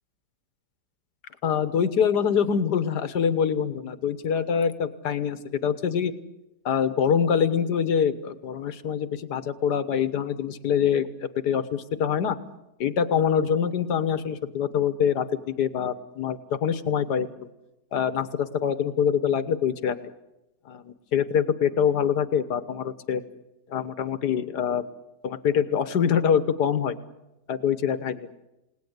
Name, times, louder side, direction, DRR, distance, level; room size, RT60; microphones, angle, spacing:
voice 1, 1.4-6.1 6.6-12.4 12.8-17.3 17.9-20.0 20.7-23.2 23.7-24.8 25.2-26.9 27.5-28.3, left 7 dB, 75° left, 13 dB, 1.8 m, -25 dB
29.5 x 19.0 x 8.2 m, 0.95 s
omnidirectional pair, 1.8 m